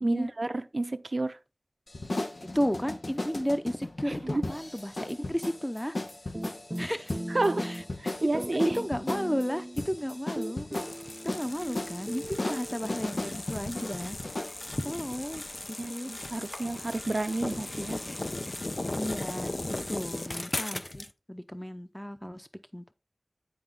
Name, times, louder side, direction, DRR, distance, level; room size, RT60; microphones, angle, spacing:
voice 1, 0.0-1.4 4.1-4.4 7.3-7.7 8.0-8.8 15.8-18.0, right 2 dB, 70° right, 0.6 m, -30 dB
sound 1, 1.9-14.6, left 2 dB, 85° left, 1.2 m, -37 dB
voice 2, 2.5-5.9 6.8-7.2 7.6-10.7 11.2-14.2 14.8-15.4 15.9-16.1 19.0-19.5 19.9-22.5 22.7-22.9, equal, 10° left, 0.8 m, -33 dB
sound 2, 6.3-8.1 8.3-9.9 10.4-13.0, right 1 dB, 20° right, 0.8 m, -39 dB
Med Speed Wall Crash OS, 10.7-21.1, left 2 dB, 55° left, 0.6 m, -37 dB
10.0 x 4.9 x 3.9 m
wide cardioid pair, 50°, 0 cm